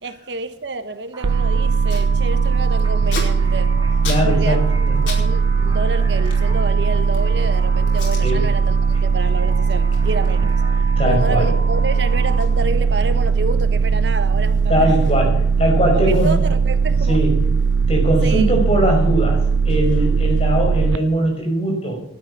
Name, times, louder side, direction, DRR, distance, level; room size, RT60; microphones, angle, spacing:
voice 1, 0.0-3.8 4.2-4.6 5.0-10.6 11.0-15.0 15.8-17.2 18.2-18.5, right 2 dB, 65° right, 1.1 m, -29 dB
sound 1, 1.1-12.4, right 2 dB, 20° right, 2.4 m, -34 dB
sound 2, 1.2-21.0, right 5 dB, 85° right, 0.4 m, -18 dB
Packing tape duct tape, 1.9-2.1 2.4-5.3 5.5-7.3 7.9-8.3 8.7-8.9 9.3-15.5 15.8-15.9 16.1-18.5 18.7-20.7, left 4 dB, 90° left, 4.9 m, -38 dB
voice 2, 4.1-5.0 8.2-8.4 11.0-11.5 14.7-16.4 17.1-17.5 17.9-22.0, equal, 35° left, 5.6 m, -20 dB
12.5 x 9.7 x 8.6 m
head